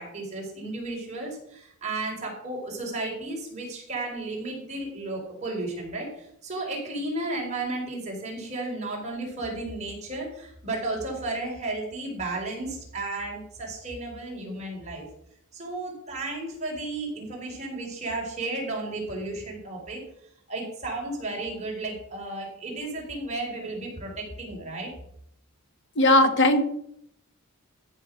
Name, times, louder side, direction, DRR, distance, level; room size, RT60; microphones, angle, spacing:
voice 1, 0.0-15.1 15.5-20.0 20.5-24.9, right 2 dB, 35° right, -2 dB, 4.4 m, -33 dB
voice 2, 26.0-26.6, left 1 dB, 60° left, 8 dB, 1.4 m, -18 dB
14.0 x 6.1 x 6.3 m, 0.71 s
head